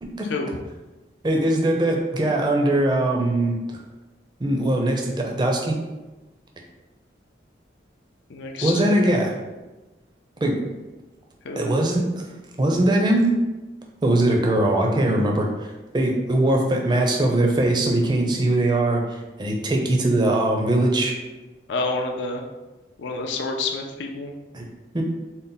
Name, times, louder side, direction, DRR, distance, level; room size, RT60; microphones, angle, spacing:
voice 1, 1.2-3.6 4.4-5.8 8.6-9.3 10.4-10.6 11.6-12.2 12.6-13.3 14.0-15.5 15.9-21.1 24.5-24.6 24.9-25.0, right 1 dB, 25° right, 1 dB, 0.4 m, -21 dB
voice 2, 8.3-9.1 11.4-11.8 21.7-22.4 23.0-24.3, left 3 dB, 80° left, 2 dB, 0.4 m, -29 dB
3.9 x 2.1 x 3.8 m, 1.1 s
head